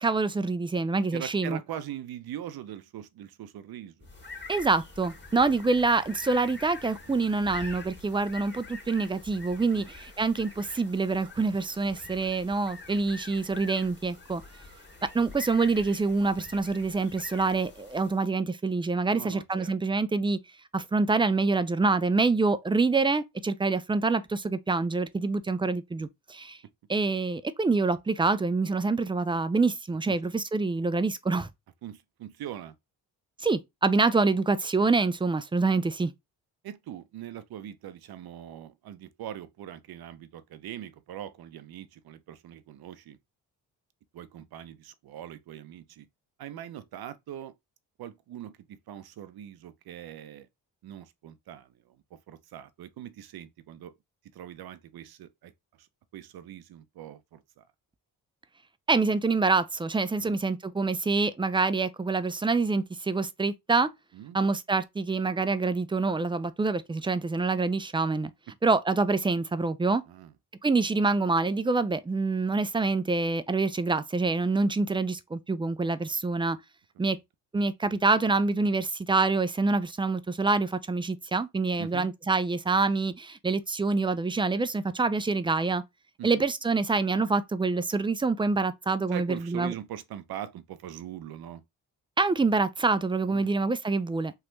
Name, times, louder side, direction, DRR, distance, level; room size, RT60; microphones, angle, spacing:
voice 1, 0.0-1.6 4.5-14.4 15.1-20.4 20.7-26.6 26.9-31.5 33.4-36.1 58.9-63.9 64.3-68.3 68.6-70.0 70.6-76.6 77.0-77.2 77.5-85.8 86.2-89.7 92.2-94.3, right 3 dB, 15° right, 0.3 m, -26 dB
voice 2, 1.1-4.1 5.5-5.6 7.1-7.3 9.7-9.9 19.1-19.7 30.1-30.2 31.8-32.7 36.6-43.2 44.1-46.1 46.4-47.5 48.0-50.5 50.8-53.9 54.3-55.5 55.8-55.9 56.1-57.6 60.2-60.4 64.1-64.4 70.1-70.3 81.8-82.1 86.2-86.4 89.1-91.6 93.3-93.5, right 11 dB, 60° right, 0.6 m, -42 dB
sound 1, 4.0-18.3, left 3 dB, 25° left, 1.8 m, -46 dB
3.3 x 2.3 x 3.1 m
supercardioid pair, 50°, 43 cm